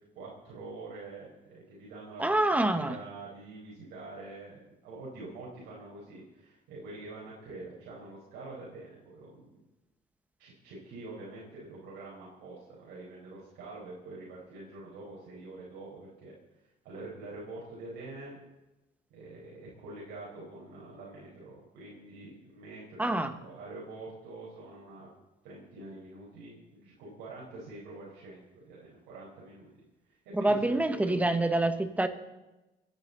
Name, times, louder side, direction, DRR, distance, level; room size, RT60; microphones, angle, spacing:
voice 1, 0.1-9.5 10.4-16.3 16.8-18.4 19.1-25.1 25.4-31.3, right 2 dB, 85° right, -5 dB, 4.6 m, -46 dB
voice 2, 2.2-2.9 23.0-23.3 30.3-32.1, right 2 dB, 10° right, 9 dB, 1.4 m, -26 dB
29.0 x 10.5 x 4.1 m, 1.0 s
cardioid pair, 110°, 17 cm